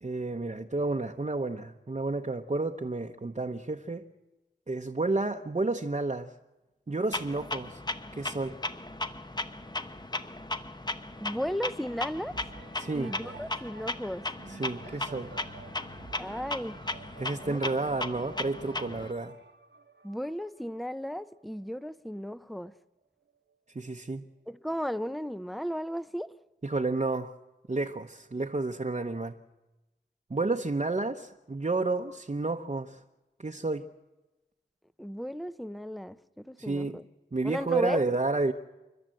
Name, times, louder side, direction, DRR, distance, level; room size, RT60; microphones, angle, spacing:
voice 1, 0.0-4.0 4.7-6.3 6.9-7.8 8.2-8.5 12.8-13.1 14.5-15.3 17.2-19.4 23.7-24.3 26.6-27.3 27.7-29.4 30.3-33.0 33.4-33.9 36.6-37.0 37.3-38.5, right 3 dB, 40° right, 0.9 m, -31 dB
Clock, 7.1-19.1, left 2 dB, 25° left, 0.9 m, -37 dB
voice 2, 11.2-12.4 12.9-14.3 16.2-16.8 17.4-17.6 20.0-22.7 24.5-26.3 35.0-36.2 36.4-37.0 37.4-38.0, equal, ahead, 0.7 m, -35 dB
sound 1, 12.2-22.0 22.7-22.8, right 4 dB, 80° right, 1.2 m, -50 dB
29.5 x 12.5 x 7.7 m
wide cardioid pair, 50°, 18 cm